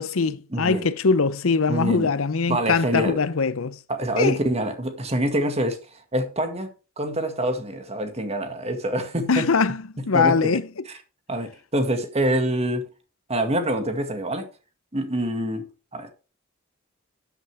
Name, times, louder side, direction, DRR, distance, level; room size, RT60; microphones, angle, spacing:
voice 1, 0.0-3.8 4.2-4.4 9.3-10.7, left 4 dB, 85° left, 0.7 m, -22 dB
voice 2, 0.5-0.9 1.7-2.1 2.5-3.2 3.9-5.8 6.1-6.7 7.0-9.5 10.0-10.6 11.3-12.9 13.3-14.5 14.9-15.7 15.9-16.1, right 1 dB, 30° right, 1.9 m, -25 dB
13.0 x 8.0 x 3.5 m
head